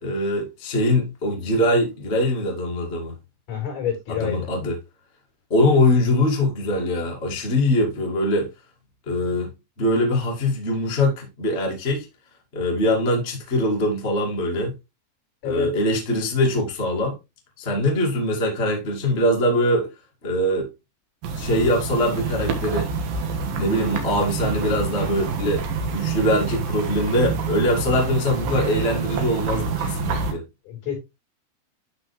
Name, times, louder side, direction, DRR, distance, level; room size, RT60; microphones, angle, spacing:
voice 1, 0.0-3.1 4.1-4.7 5.5-8.5 9.0-9.5 9.8-12.1 12.5-14.7 15.4-17.2 17.6-19.9 20.2-20.7 21.3-22.9 23.6-25.6 25.9-30.4, left 1 dB, 30° left, 1.1 m, -22 dB
voice 2, 3.5-4.5 15.4-15.7 30.7-31.0, left 9 dB, 50° left, 6.3 m, -28 dB
sound 1, 21.2-30.3, right 4 dB, 65° right, 2.6 m, -27 dB
12.0 x 4.2 x 3.3 m
omnidirectional pair, 5.3 m